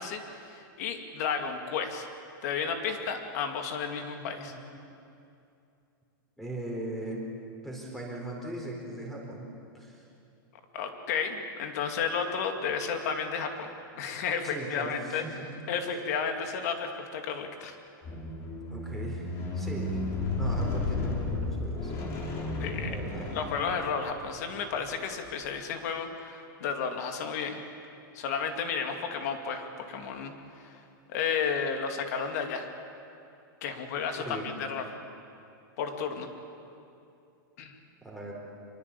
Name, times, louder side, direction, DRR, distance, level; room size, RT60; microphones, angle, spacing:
voice 1, 0.0-2.1 2.4-4.5 10.7-13.7 14.0-15.2 15.7-17.8 22.6-23.0 23.3-27.6 28.1-30.4 30.6-30.8 31.1-32.7 33.6-34.9 35.8-36.3 37.6-37.8, left 6 dB, 45° left, 5 dB, 2.5 m, -32 dB
voice 2, 4.2-4.6 6.4-7.2 7.6-9.5 9.7-10.0 14.4-15.5 18.7-20.0 20.4-21.9 22.2-22.4 22.8-23.3 34.2-34.5 38.0-38.3, right 1 dB, ahead, -1 dB, 4.2 m, -39 dB
Squeak, 18.0-24.4 25.2-25.3, left 2 dB, 25° left, 3.5 m, -33 dB
25.5 x 22.5 x 8.5 m, 2.6 s
supercardioid pair, 170°, 12 cm